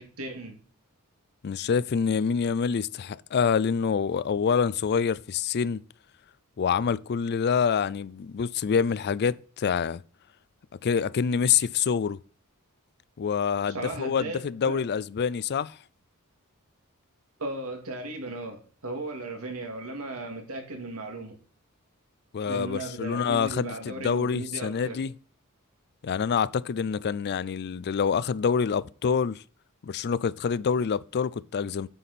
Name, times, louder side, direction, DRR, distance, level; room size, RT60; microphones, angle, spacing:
voice 1, 0.2-0.6 13.7-14.8 17.4-21.4 22.4-25.0, right 2 dB, 85° right, 2.3 m, -36 dB
voice 2, 1.4-5.8 6.6-10.0 10.8-12.2 13.2-15.8 22.3-25.1 26.0-29.4 29.8-31.9, left 6 dB, 50° left, 0.4 m, -26 dB
9.1 x 7.1 x 4.2 m
head